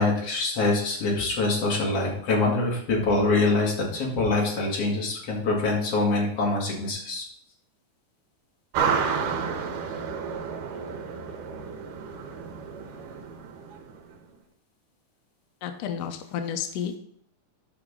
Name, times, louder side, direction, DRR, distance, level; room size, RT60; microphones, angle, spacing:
voice 1, 0.0-7.3, left 3 dB, 50° left, -2 dB, 3.1 m, -24 dB
sound 1, 8.7-14.1, right 6 dB, 90° right, 2.8 m, -31 dB
voice 2, 15.6-17.0, left 8 dB, 85° left, 7 dB, 1.4 m, -31 dB
9.8 x 5.9 x 3.7 m, 0.66 s
omnidirectional pair, 3.7 m